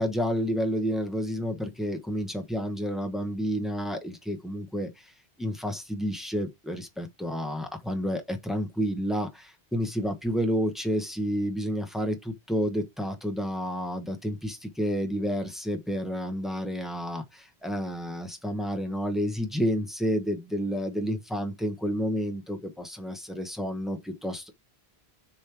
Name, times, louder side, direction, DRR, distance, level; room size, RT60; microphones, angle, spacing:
voice 1, 0.0-5.1 5.4-24.5, equal, ahead, 1.0 m, -30 dB
6.9 x 3.2 x 4.7 m
omnidirectional pair, 1.1 m